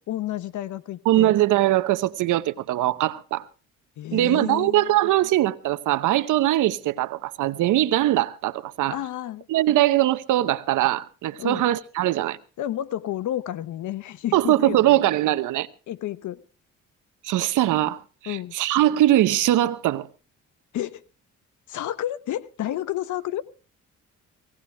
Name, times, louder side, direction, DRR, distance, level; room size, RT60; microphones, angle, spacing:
voice 1, 0.1-1.3 4.0-4.9 8.9-9.5 11.4-11.6 12.6-15.0 15.9-16.4 18.3-18.6 20.7-21.0 21.7-23.4, left 12 dB, 75° left, 1.0 m, -31 dB
voice 2, 1.1-3.4 4.1-9.0 9.5-12.4 14.3-15.7 17.2-20.1, right 14 dB, 80° right, 0.9 m, -21 dB
18.0 x 17.5 x 3.4 m
cardioid pair, 90°, 30 cm